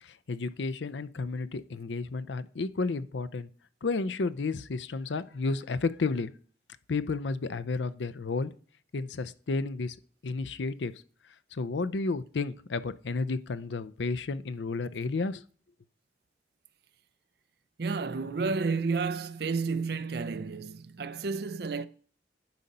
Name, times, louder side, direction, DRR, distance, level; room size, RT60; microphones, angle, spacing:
voice 1, 0.0-3.5 3.8-6.3 6.9-8.5 8.9-10.0 10.2-10.9 11.5-15.4, left 3 dB, 75° left, 0.5 m, -32 dB
voice 2, 17.8-21.9, right 4 dB, 60° right, 0.5 m, -31 dB
10.5 x 4.2 x 5.3 m
head